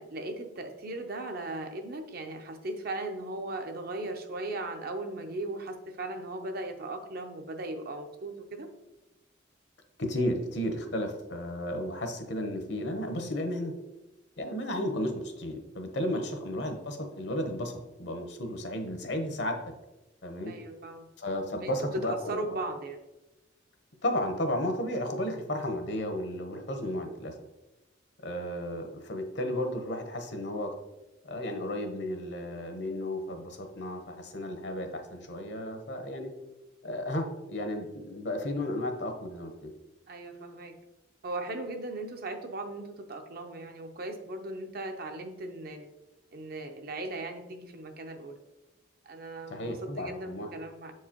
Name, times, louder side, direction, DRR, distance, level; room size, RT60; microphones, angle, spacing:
voice 1, 0.0-8.7 20.5-21.1 21.6-23.0 40.1-40.7 41.2-45.9 46.3-48.4 49.0-50.9, right 2 dB, 50° right, 5 dB, 0.6 m, -38 dB
voice 2, 10.0-13.7 14.4-19.6 20.2-20.5 21.2-22.4 24.0-27.3 28.2-30.7 31.2-36.3 36.8-39.7 49.5-50.5, left 1 dB, 60° left, 5 dB, 0.8 m, -33 dB
6.8 x 4.7 x 2.9 m, 1.0 s
head